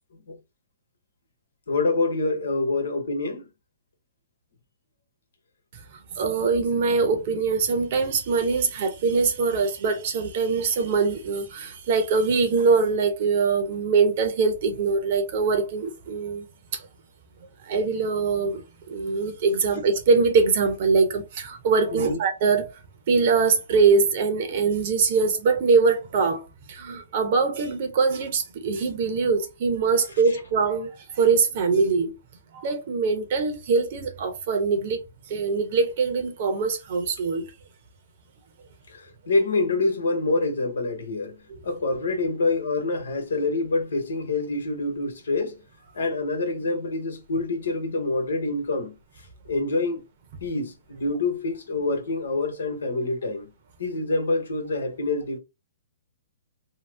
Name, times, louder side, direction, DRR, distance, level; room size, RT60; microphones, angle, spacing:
voice 1, 1.7-3.5 21.9-22.2 38.9-45.6 45.9-49.0 49.5-50.0 50.4-53.5 53.8-55.4, left 3 dB, 85° left, 1.0 m, -26 dB
voice 2, 6.2-16.5 16.7-16.9 17.6-22.8 23.1-32.2 32.5-35.0 35.3-37.5, right 4 dB, 50° right, 0.9 m, -23 dB
2.9 x 2.0 x 3.2 m
hypercardioid pair, 150°, 0 cm